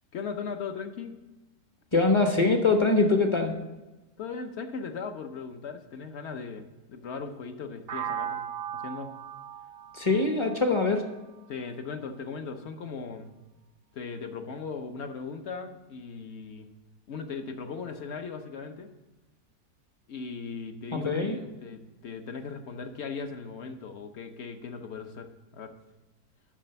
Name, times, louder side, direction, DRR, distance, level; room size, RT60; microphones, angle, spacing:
voice 1, 0.1-1.1 4.2-8.4 8.7-9.1 11.5-13.3 13.9-16.7 17.1-18.9 20.1-25.8, left 5 dB, 55° left, 7 dB, 0.9 m, -38 dB
voice 2, 1.9-3.5 9.9-11.0 20.9-21.4, left 3 dB, 25° left, 5 dB, 0.7 m, -23 dB
sound 1, 7.9-11.8, right 9 dB, 75° right, 0.5 m, -38 dB
7.4 x 6.1 x 6.8 m, 1.1 s
omnidirectional pair, 1.6 m